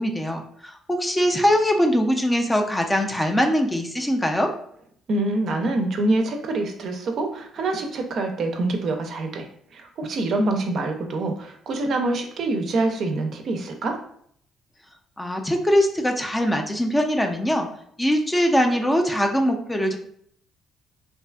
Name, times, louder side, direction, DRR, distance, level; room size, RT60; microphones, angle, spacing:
voice 1, 0.0-4.5 15.2-17.7 18.0-20.0, equal, 10° left, 4 dB, 0.4 m, -22 dB
voice 2, 5.1-9.5 9.7-14.0, right 2 dB, 60° right, 4 dB, 0.4 m, -25 dB
2.6 x 2.3 x 2.2 m, 0.64 s
supercardioid pair, 65°, 0 cm